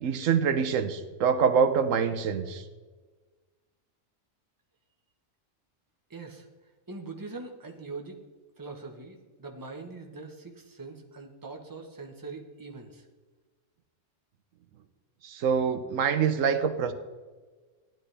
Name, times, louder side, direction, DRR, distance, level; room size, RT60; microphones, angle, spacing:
voice 1, 0.0-2.6 15.2-16.9, right 6 dB, 85° right, 9 dB, 1.1 m, -25 dB
voice 2, 6.1-6.5 6.9-8.2 8.6-13.0, right 3 dB, 15° right, 2 dB, 1.1 m, -42 dB
15.0 x 10.5 x 3.3 m, 1.3 s
omnidirectional pair, 1.3 m